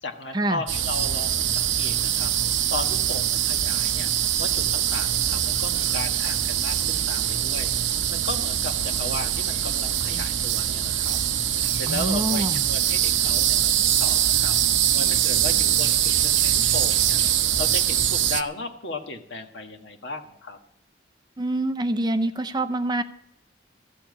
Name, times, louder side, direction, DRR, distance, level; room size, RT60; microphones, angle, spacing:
voice 1, 0.0-2.3 2.7-4.1 4.4-7.7 8.1-11.2 11.7-14.6 14.9-17.2 17.6-20.6, left 3 dB, 65° left, 5 dB, 1.5 m, -35 dB
sound 1, 0.7-18.4, right 10 dB, 75° right, 0.7 m, -23 dB
voice 2, 11.9-12.6 21.4-23.0, right 1 dB, 20° right, 10 dB, 0.5 m, -25 dB
14.0 x 7.3 x 8.4 m, 0.77 s
head